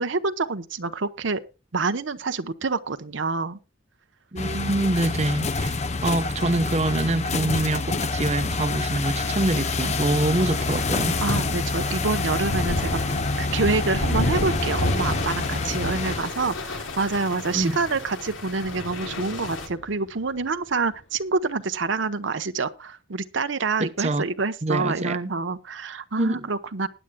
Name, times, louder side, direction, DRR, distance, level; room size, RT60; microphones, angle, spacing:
voice 1, 0.0-1.4 1.7-3.6 4.5-4.9 11.2-12.9 13.4-26.9, right 4 dB, 75° right, 0.9 m, -27 dB
voice 2, 4.3-11.2 17.5-17.7 23.8-24.2 24.6-25.3 26.2-26.5, right 2 dB, 35° right, 0.8 m, -25 dB
sound 1, 4.4-16.2, left 3 dB, 35° left, 0.7 m, -27 dB
sound 2, 9.1-19.7, left 3 dB, 85° left, 3.2 m, -36 dB
Thunder, 10.1-20.7, left 1 dB, 70° left, 2.5 m, -33 dB
20.0 x 10.0 x 2.2 m
head